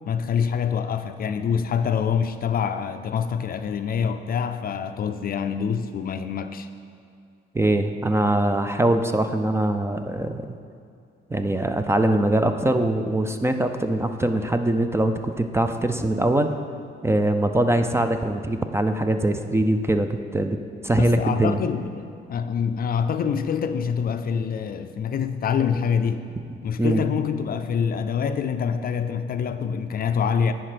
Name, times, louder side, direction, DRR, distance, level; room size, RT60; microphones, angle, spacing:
voice 1, 0.1-6.7 21.0-26.2 26.6-30.5, left 7 dB, 50° left, 9 dB, 0.4 m, -25 dB
voice 2, 7.5-10.5 11.3-16.5 17.0-20.6 20.8-21.6 26.8-27.0, right 1 dB, 15° right, 7 dB, 0.4 m, -22 dB
10.0 x 4.4 x 5.0 m, 2.4 s
cardioid pair, 90°, 20 cm